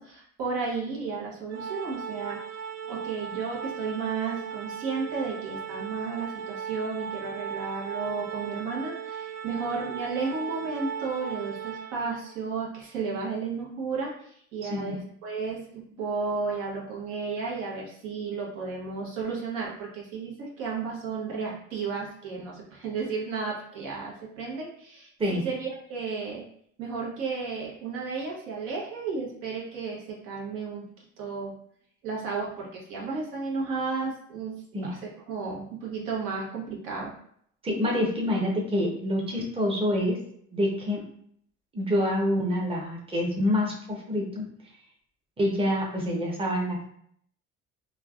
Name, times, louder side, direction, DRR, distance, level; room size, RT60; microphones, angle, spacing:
voice 1, 0.0-2.4 2.9-26.4 26.8-30.9 31.2-31.6 32.0-37.1, right 4 dB, 75° right, -3 dB, 1.0 m, -33 dB
Organ, 1.5-12.4, right 7 dB, 55° right, 0.4 m, -37 dB
voice 2, 37.6-40.2 40.5-41.1 41.7-44.4 45.4-46.8, left 1 dB, 15° right, -1 dB, 0.7 m, -27 dB
3.2 x 2.2 x 2.4 m, 0.66 s
cardioid pair, 100°, 32 cm